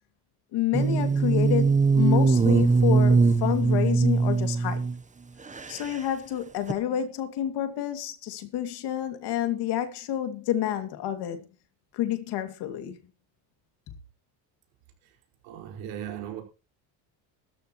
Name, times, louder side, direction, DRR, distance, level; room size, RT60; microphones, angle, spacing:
voice 1, 0.5-4.9 5.7-11.4 11.9-13.0, left 11 dB, 70° left, 2.7 m, -29 dB
sound 1, 0.7-4.9 5.5-6.0 6.7-6.8, right 4 dB, 20° right, 1.1 m, -21 dB
voice 2, 15.4-16.4, right 10 dB, 85° right, 5.6 m, -37 dB
16.0 x 14.0 x 3.2 m
cardioid pair, 100°, 41 cm